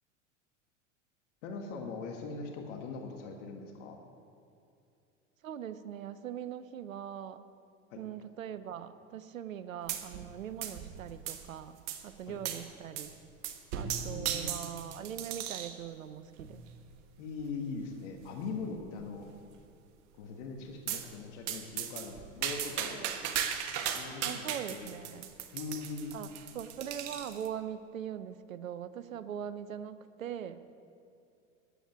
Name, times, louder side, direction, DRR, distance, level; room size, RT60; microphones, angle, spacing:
voice 1, 1.4-4.0 7.9-8.0 12.3-12.4 14.0-14.6 17.2-19.3 20.2-23.1 23.9-25.2 25.5-26.1, left 4 dB, 65° left, 2 dB, 1.7 m, -41 dB
voice 2, 5.4-7.4 8.0-11.8 12.0-13.1 13.7-16.6 22.8-23.1 24.2-25.3 26.1-26.3 26.5-30.7, right 9 dB, 90° right, 12 dB, 0.7 m, -41 dB
sound 1, 9.9-10.3 10.6-11.5 11.9-12.0 12.4-12.6 13.0-13.1 13.4-15.8 16.4-16.7 17.4-17.5 17.8-17.9 18.2-18.3 18.8-19.2 20.9-21.1 21.5-27.5, right 9 dB, 60° right, 1.4 m, -37 dB
10.0 x 8.4 x 9.1 m, 2.6 s
hypercardioid pair, 90°, 39 cm